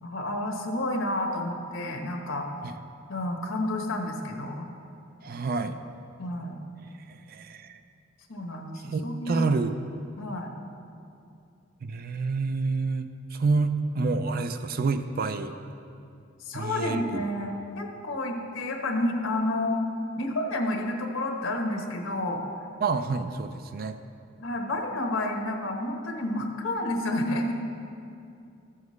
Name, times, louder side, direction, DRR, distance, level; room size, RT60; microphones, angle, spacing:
voice 1, 0.0-2.5 3.1-4.7 6.2-6.6 8.3-9.5 10.2-10.5 16.4-19.8 20.2-22.4 24.4-27.5, left 1 dB, 85° left, 2 dB, 1.1 m, -30 dB
voice 2, 5.2-5.8 7.1-7.8 8.9-9.8 11.8-15.5 16.5-17.2 22.8-24.0, right 4 dB, 50° right, 9 dB, 0.4 m, -28 dB
14.0 x 7.3 x 3.2 m, 2.6 s
head